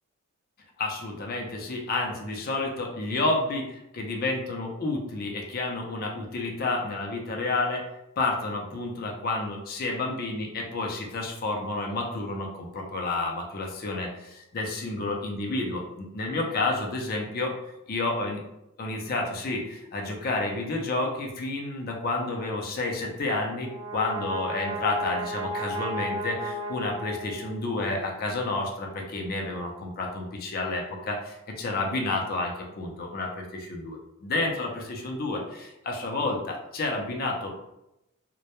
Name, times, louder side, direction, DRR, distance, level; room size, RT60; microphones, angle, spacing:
voice 1, 0.8-7.8 8.2-17.5 17.9-18.4 18.8-37.5, left 2 dB, 40° left, 0 dB, 0.4 m, -30 dB
Brass instrument, 23.4-27.8, equal, 85° right, 0.6 m, -34 dB
2.1 x 2.0 x 2.8 m, 0.87 s
head